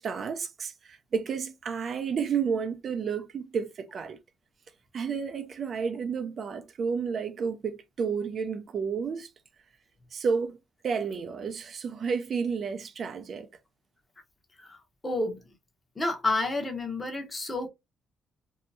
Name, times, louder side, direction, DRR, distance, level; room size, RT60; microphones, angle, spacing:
voice 1, 0.0-4.2 4.9-9.3 10.1-10.6 10.8-13.5, right 6 dB, 55° right, 0.4 m, -31 dB
voice 2, 15.0-15.4 16.0-17.7, left 2 dB, 25° left, 0.9 m, -30 dB
2.7 x 2.1 x 2.6 m
cardioid pair, 90°, 0 cm